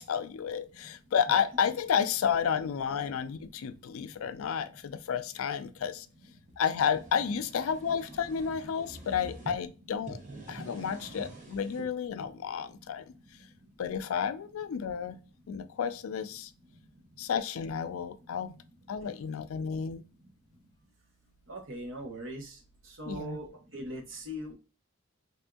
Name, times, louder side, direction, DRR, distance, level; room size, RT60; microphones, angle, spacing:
voice 1, 0.0-6.1 6.6-10.2 10.5-13.1 13.8-15.2 15.5-16.5 17.2-18.6 18.9-20.0 23.1-23.4, left 7 dB, 80° left, 0.4 m, -31 dB
sound 1, 6.5-9.6 10.0-11.9, right 2 dB, 35° right, 0.7 m, -46 dB
voice 2, 21.5-22.6 22.9-23.5 23.7-24.5, right 1 dB, 65° right, 0.9 m, -40 dB
3.4 x 2.6 x 2.3 m
head